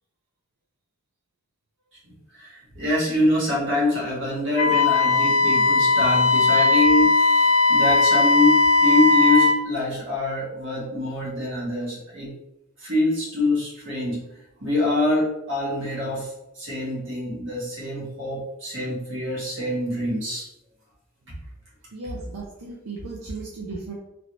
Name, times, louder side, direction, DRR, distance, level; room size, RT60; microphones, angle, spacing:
voice 1, 2.0-12.3 12.8-14.3 14.6-20.5, left 2 dB, 55° right, -6 dB, 1.4 m, -25 dB
Wind instrument woodwind instrument, 4.6-9.6, left 3 dB, 60° left, 0.3 m, -18 dB
voice 2, 21.9-23.9, right 3 dB, 85° right, -2 dB, 0.5 m, -36 dB
3.1 x 2.6 x 3.0 m, 0.86 s
head